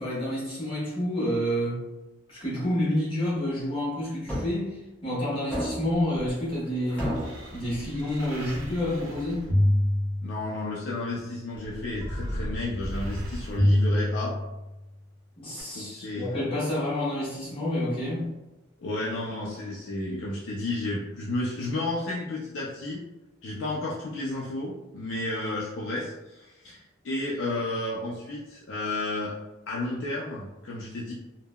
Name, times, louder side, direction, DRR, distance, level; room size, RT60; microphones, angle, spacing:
voice 1, 0.0-1.8 2.3-7.2 7.5-9.5 15.4-18.3, left 1 dB, 25° left, -8 dB, 1.2 m, -29 dB
sound 1, 4.3-4.6 5.5-6.0 7.0-7.5, equal, 5° left, 0.9 m, -31 dB
sound 2, 6.0-10.8 11.5-14.8 15.6-15.7, left 1 dB, 90° right, 0.7 m, -29 dB
voice 2, 10.2-14.3 15.7-16.3 18.8-23.0 23.4-29.4 29.7-31.1, left 2 dB, 65° left, -5 dB, 0.4 m, -32 dB
3.6 x 2.1 x 2.2 m, 1.0 s
head